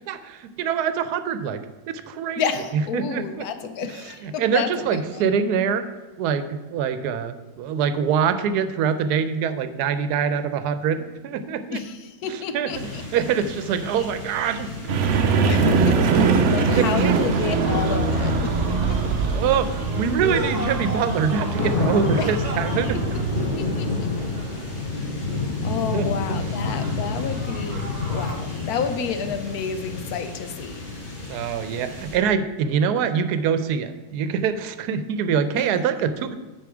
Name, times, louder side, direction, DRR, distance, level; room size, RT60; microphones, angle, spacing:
voice 1, 0.1-1.6 1.9-2.5 2.7-3.4 4.2-5.8 6.2-11.8 12.3-12.7 13.1-14.7 16.8-17.2 17.5-17.6 19.3-23.0 25.9-26.4 31.3-36.4, right 7 dB, 85° right, 11 dB, 1.1 m, -24 dB
voice 2, 2.4-5.2 11.7-13.0 15.5-16.0 16.5-18.5 22.1-22.3 23.6-24.3 25.0-30.8, left 6 dB, 75° left, 9 dB, 1.2 m, -30 dB
sound 1, 12.7-32.2, left 3 dB, 40° left, 1.7 m, -30 dB
sound 2, 14.9-23.5, right 4 dB, 60° right, 0.8 m, -23 dB
sound 3, 17.6-24.9 26.5-28.4, right 2 dB, 35° right, 0.8 m, -36 dB
9.3 x 4.7 x 4.9 m, 1.2 s
omnidirectional pair, 1.6 m